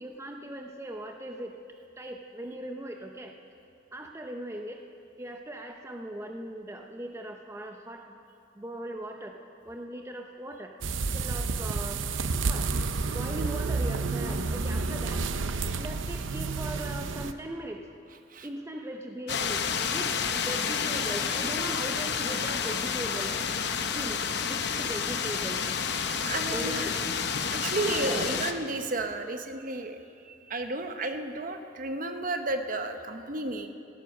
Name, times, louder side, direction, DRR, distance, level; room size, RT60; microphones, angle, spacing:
voice 1, 0.0-1.5 2.0-3.3 3.9-4.8 5.2-8.2 8.6-9.4 9.6-10.7 11.1-12.0 12.5-12.7 13.1-15.3 15.8-17.8 18.4-23.4 23.7-25.6 26.5-27.3 27.8-28.4 29.2-29.3, right 1 dB, 15° right, 3 dB, 0.6 m, -39 dB
sound 1, 10.8-17.3, right 3 dB, 75° right, 0.7 m, -30 dB
sound 2, 19.3-28.5, left 6 dB, 55° left, 0.8 m, -30 dB
voice 2, 26.2-26.9 27.5-30.0 30.3-33.7, right 2 dB, 45° right, 7 dB, 0.8 m, -32 dB
15.0 x 13.5 x 6.0 m, 2.5 s
head